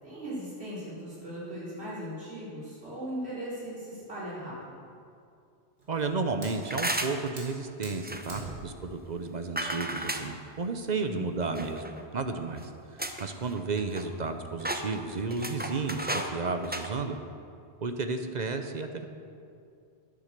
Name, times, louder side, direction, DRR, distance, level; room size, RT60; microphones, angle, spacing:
voice 1, 0.0-4.7 11.0-11.3, equal, 65° right, -9 dB, 4.3 m, -38 dB
Fire, 5.8-11.8, right 2 dB, 85° right, 2.9 m, -48 dB
voice 2, 5.9-11.8 12.1-17.2 17.8-19.1, right 4 dB, 45° right, 7 dB, 0.8 m, -32 dB
sound 1, 6.6-7.3 8.0-8.4 9.6-10.3 11.5-12.0 12.6-12.7 13.0-13.3 13.6-14.3 14.6-16.3 16.6-16.9, right 1 dB, 10° right, 0.5 m, -33 dB
10.5 x 9.7 x 6.7 m, 2.4 s
omnidirectional pair, 1.2 m